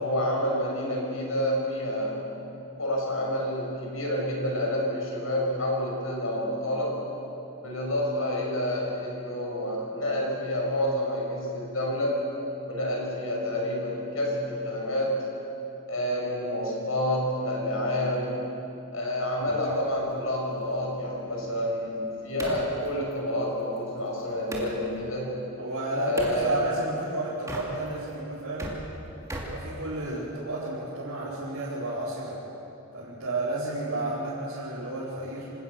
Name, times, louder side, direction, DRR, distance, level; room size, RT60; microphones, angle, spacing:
voice 1, 0.0-2.3 2.8-7.0 7.6-12.2 12.7-15.2 15.9-18.5 18.9-25.4 26.0-26.6, left 1 dB, 75° left, -1 dB, 6.2 m, -29 dB
sound 1, 19.5-24.8 26.2-26.4 27.3-28.1 28.4-30.4, right 1 dB, 15° right, 2.7 m, -40 dB
voice 2, 25.6-28.9 29.5-32.4 32.9-35.5, right 2 dB, 80° right, -10 dB, 4.7 m, -32 dB
26.0 x 18.0 x 6.8 m, 2.9 s
head